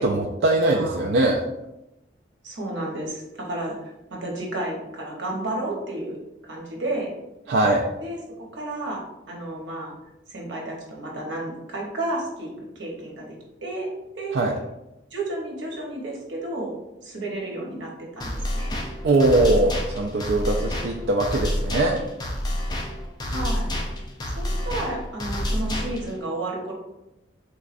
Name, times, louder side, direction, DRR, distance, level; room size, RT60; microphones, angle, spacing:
voice 1, 0.0-1.4 7.5-7.8 14.3-14.5 19.0-22.0, right 2 dB, 70° right, -1 dB, 0.3 m, -21 dB
voice 2, 0.6-1.0 2.4-3.8 4.1-6.2 6.4-7.1 8.0-8.2 8.5-9.9 10.3-12.5 12.7-13.3 13.6-14.4 15.1-16.8 17.0-18.8 23.3-23.7 24.3-26.7, right 2 dB, 90° right, -1 dB, 0.9 m, -32 dB
sound 1, 18.2-26.2, equal, 20° left, 0.4 m, -28 dB
3.5 x 3.0 x 2.5 m, 0.92 s
head